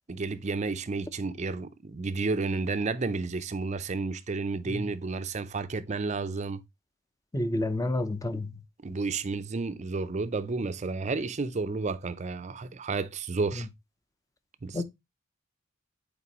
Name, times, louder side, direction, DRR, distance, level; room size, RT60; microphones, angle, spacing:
voice 1, 0.1-6.6 8.8-13.7 14.6-14.8, right 3 dB, 35° right, 0.5 m, -31 dB
voice 2, 7.3-8.5 14.7-14.8, left 1 dB, 15° left, 0.6 m, -29 dB
8.3 x 4.3 x 2.9 m
head